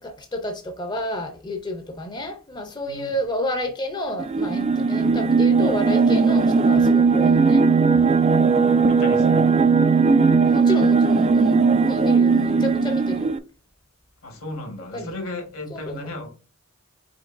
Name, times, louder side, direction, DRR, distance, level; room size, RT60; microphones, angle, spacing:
voice 1, 0.0-7.6 7.9-8.0 10.5-13.4 14.9-15.1 15.7-16.0, left 1 dB, 20° left, 0.6 m, -30 dB
sound 1, 4.2-13.4, right 4 dB, 30° right, 0.3 m, -18 dB
voice 2, 8.9-9.7 14.2-16.3, left 2 dB, 75° left, 1.5 m, -35 dB
5.2 x 3.9 x 2.6 m
head